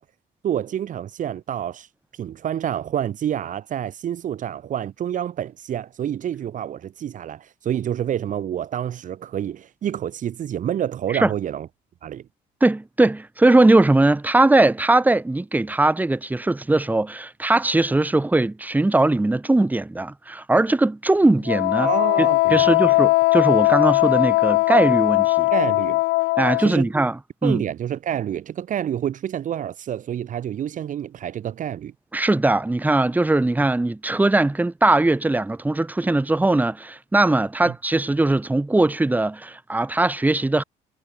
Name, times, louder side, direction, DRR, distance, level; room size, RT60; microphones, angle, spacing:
voice 1, 0.4-1.9 2.2-11.7 12.0-12.2 21.8-23.0 25.5-26.0 26.6-26.9 27.4-31.9 37.6-37.7, right 10 dB, 50° right, 1.2 m, -28 dB
voice 2, 12.6-21.9 22.2-25.5 26.4-27.6 32.1-40.6, right 2 dB, 10° right, 1.6 m, -20 dB
Wind instrument woodwind instrument, 21.5-26.7, left 22 dB, 90° left, 0.6 m, -19 dB
cardioid pair, 110°, 17 cm